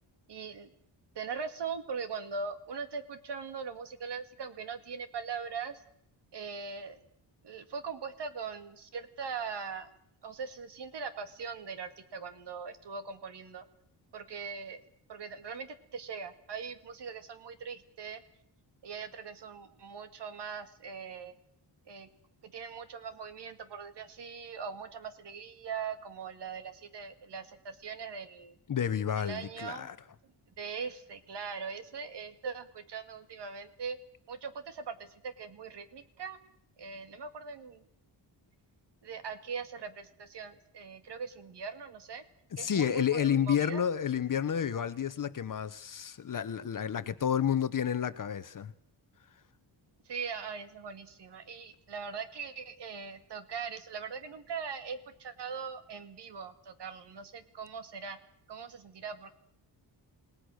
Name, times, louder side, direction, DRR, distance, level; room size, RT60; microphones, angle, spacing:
voice 1, 0.3-0.7 1.2-5.8 6.3-7.0 7.4-9.9 10.2-13.6 14.1-14.8 15.1-18.2 18.8-21.3 21.9-22.1 22.4-28.5 29.2-29.9 30.6-34.0 34.3-36.4 36.8-37.8 39.0-42.2 42.6-43.8 50.1-58.2 58.5-59.3, right 5 dB, 60° right, 2.2 m, -41 dB
voice 2, 28.7-29.9 42.5-48.7, left 8 dB, 45° left, 1.0 m, -30 dB
28.5 x 18.5 x 6.5 m
wide cardioid pair, 170°, 46 cm